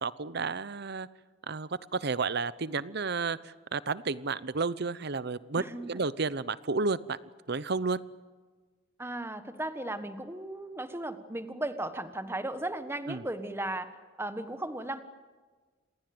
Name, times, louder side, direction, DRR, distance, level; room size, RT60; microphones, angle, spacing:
voice 1, 0.0-1.1 1.5-7.2 7.5-8.0 13.1-13.2, right 4 dB, 50° right, 17 dB, 0.8 m, -32 dB
voice 2, 5.6-6.0 9.0-13.9 14.2-15.0, right 1 dB, 10° right, 10 dB, 1.3 m, -36 dB
27.0 x 21.0 x 7.9 m, 1.4 s
head